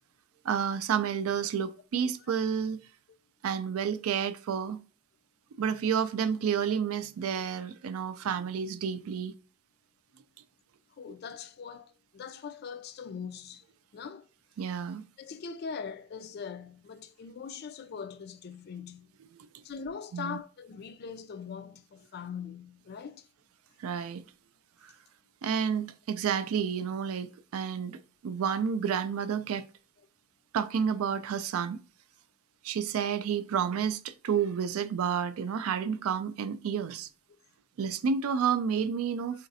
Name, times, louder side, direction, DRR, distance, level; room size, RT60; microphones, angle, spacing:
voice 1, 0.4-2.8 3.4-4.8 5.6-9.3 14.6-15.1 20.1-20.4 23.8-24.2 25.4-28.0 28.2-29.6 30.5-31.8 32.6-37.1 37.8-39.5, right 7 dB, 75° right, 0.3 m, -30 dB
voice 2, 11.0-13.6 13.9-14.3 15.2-19.1 19.6-23.3 37.3-37.4, left 6 dB, 45° left, 0.3 m, -41 dB
3.9 x 2.5 x 2.6 m
head